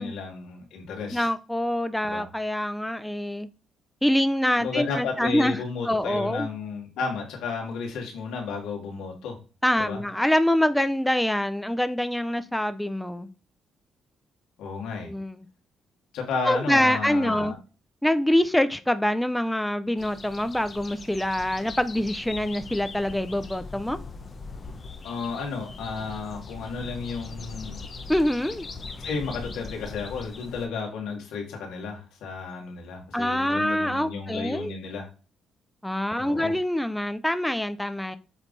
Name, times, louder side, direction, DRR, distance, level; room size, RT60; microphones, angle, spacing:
voice 1, 0.0-1.3 2.0-2.3 4.6-9.4 9.8-10.0 14.6-15.1 16.1-17.6 25.0-27.8 29.0-35.1 36.2-36.5, left 5 dB, 90° left, 2.4 m, -33 dB
voice 2, 1.1-3.5 4.0-5.6 5.9-6.5 9.6-13.3 15.0-15.4 16.4-17.6 18.0-24.0 28.1-28.7 33.1-34.7 35.8-38.2, left 1 dB, 5° left, 0.6 m, -25 dB
sound 1, 20.0-30.7, left 3 dB, 40° left, 1.0 m, -40 dB
7.3 x 3.5 x 4.1 m
cardioid pair, 90°, 0 cm